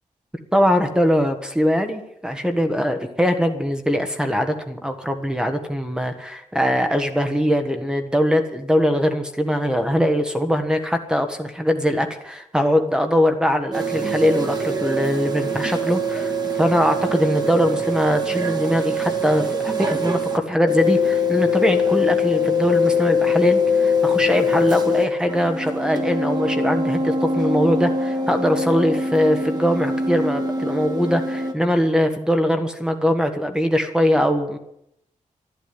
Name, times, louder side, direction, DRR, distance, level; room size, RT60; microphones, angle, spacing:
voice 1, 0.5-16.3 16.6-34.6, equal, 5° right, 5 dB, 1.3 m, -21 dB
sound 1, 13.7-20.4 20.7-25.0 25.3-31.5, left 2 dB, 30° right, 1.8 m, -23 dB
12.5 x 12.0 x 9.5 m, 0.77 s
wide cardioid pair, 165°, 13 cm